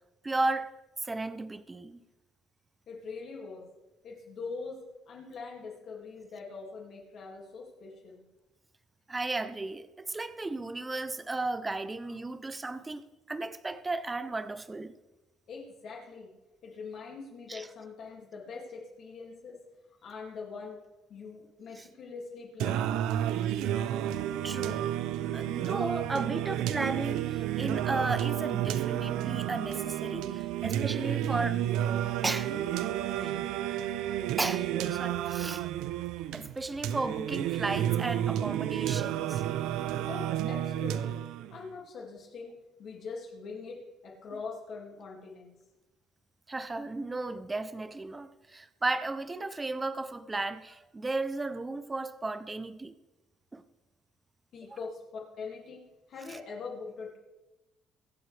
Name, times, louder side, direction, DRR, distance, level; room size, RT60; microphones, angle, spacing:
voice 1, 0.2-0.7 1.0-2.0 9.1-14.9 17.5-17.7 21.8-21.9 24.4-24.9 25.3-31.6 32.2-32.5 33.1-33.4 34.4-35.7 36.3-39.4 46.5-52.9 53.5-53.6 56.3-56.4, right 2 dB, 15° right, 0.5 m, -34 dB
voice 2, 2.9-3.7 4.0-8.2 15.5-16.3 16.6-19.6 20.0-20.8 21.1-22.9 40.1-41.2 41.5-45.5 54.5-57.2, left 4 dB, 50° left, 2.2 m, -43 dB
Singing, 22.6-41.6, right 11 dB, 85° right, 0.5 m, -31 dB
22.5 x 7.7 x 3.3 m
cardioid pair, 170°, 0 cm